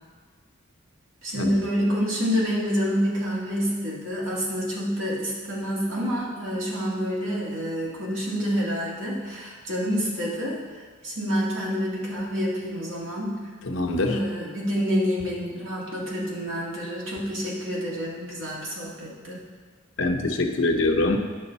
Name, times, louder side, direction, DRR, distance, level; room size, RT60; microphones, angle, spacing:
voice 1, 1.2-10.6 11.0-13.4 14.0-19.4, equal, 75° right, -4 dB, 2.1 m, -28 dB
voice 2, 13.6-14.2 20.0-21.2, left 2 dB, 65° left, 3 dB, 0.8 m, -24 dB
9.5 x 6.2 x 4.1 m, 1.5 s
head